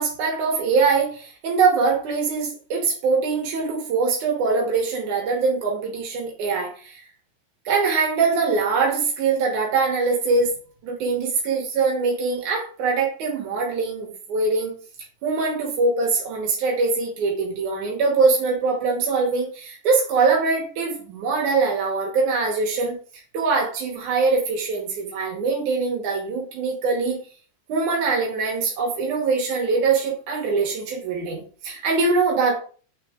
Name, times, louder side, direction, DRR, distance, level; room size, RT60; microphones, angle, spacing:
voice 1, 0.0-7.0 7.6-10.5 10.8-14.7 15.2-22.9 23.3-27.2 27.7-32.5, right 4 dB, 85° right, -1 dB, 1.7 m, -23 dB
7.4 x 3.6 x 3.6 m, 0.41 s
omnidirectional pair, 5.5 m